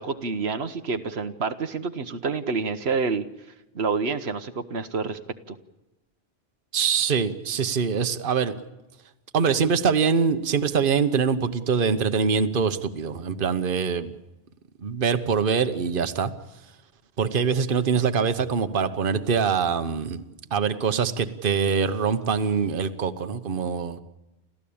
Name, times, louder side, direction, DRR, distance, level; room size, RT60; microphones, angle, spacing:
voice 1, 0.0-3.3 3.7-5.2 5.5-5.6, right 4 dB, 75° right, 9 dB, 1.3 m, -28 dB
voice 2, 6.7-8.5 9.3-14.1 14.8-16.3 17.2-20.2 20.5-24.0, right 6 dB, 55° right, 10 dB, 1.2 m, -24 dB
30.0 x 14.0 x 8.7 m, 0.99 s
omnidirectional pair, 1.1 m